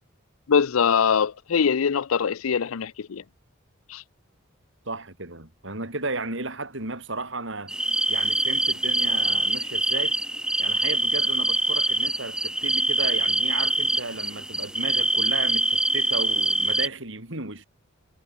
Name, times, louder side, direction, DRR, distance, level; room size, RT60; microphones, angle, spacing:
voice 1, 0.5-3.2 3.9-4.0, left 6 dB, 90° left, 0.5 m, -23 dB
voice 2, 4.9-7.7 8.1-10.2 10.6-17.7, right 2 dB, 60° right, 4.5 m, -34 dB
sound 1, 7.7-16.9, right 1 dB, 5° right, 0.5 m, -24 dB
head